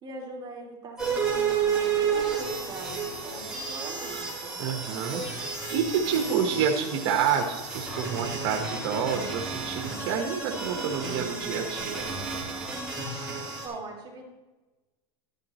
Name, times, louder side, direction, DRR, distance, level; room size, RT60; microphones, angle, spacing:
voice 1, 0.0-4.6 13.6-14.2, right 3 dB, 30° right, -2 dB, 2.9 m, -42 dB
sound 1, 1.0-13.7, right 5 dB, 5° right, 3.6 m, -31 dB
voice 2, 4.6-12.1 13.1-13.3, right 7 dB, 65° right, 1 dB, 1.3 m, -29 dB
11.5 x 9.6 x 3.1 m, 1.2 s
supercardioid pair, 125°, 15 cm